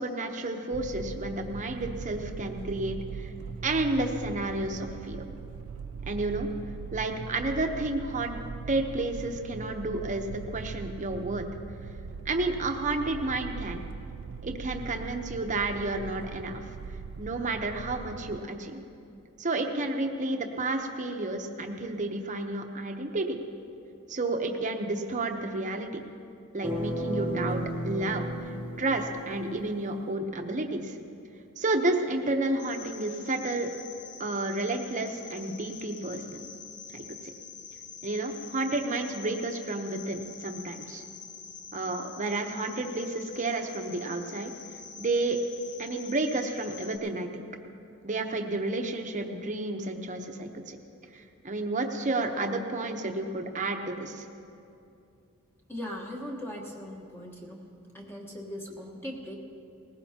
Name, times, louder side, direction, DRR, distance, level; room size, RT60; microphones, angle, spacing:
voice 1, 0.0-3.3 3.6-5.2 6.1-6.5 6.9-8.4 8.7-11.4 12.2-13.8 14.4-16.6 17.2-18.8 19.4-23.4 24.1-26.0 26.5-28.5 28.8-31.0 31.6-33.7 34.2-36.5 36.9-37.0 38.0-41.0 41.7-44.5 45.0-45.4 45.8-47.4 48.0-50.8 51.1-54.2, right 2 dB, 35° right, 4 dB, 0.9 m, -31 dB
sound 1, 0.7-18.4, right 5 dB, 70° right, 0.4 m, -40 dB
sound 2, 26.6-29.7, equal, 5° right, 1.0 m, -33 dB
Cricket, 32.6-47.0, left 6 dB, 50° left, 0.9 m, -46 dB
voice 2, 55.7-57.6 57.9-59.4, equal, 10° left, -1 dB, 1.2 m, -39 dB
19.0 x 16.0 x 2.9 m, 2.6 s
head